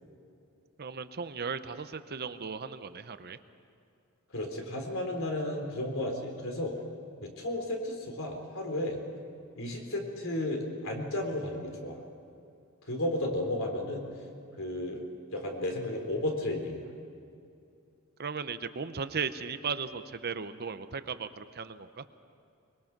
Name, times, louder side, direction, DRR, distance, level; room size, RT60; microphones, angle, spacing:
voice 1, 0.8-3.4 18.2-22.0, right 5 dB, 45° right, 11 dB, 0.7 m, -36 dB
voice 2, 4.3-6.8 7.2-9.0 9.6-12.0 12.8-14.1 14.6-15.0 15.3-16.9, left 1 dB, 65° left, 2 dB, 3.8 m, -33 dB
24.0 x 22.0 x 6.0 m, 2.5 s
head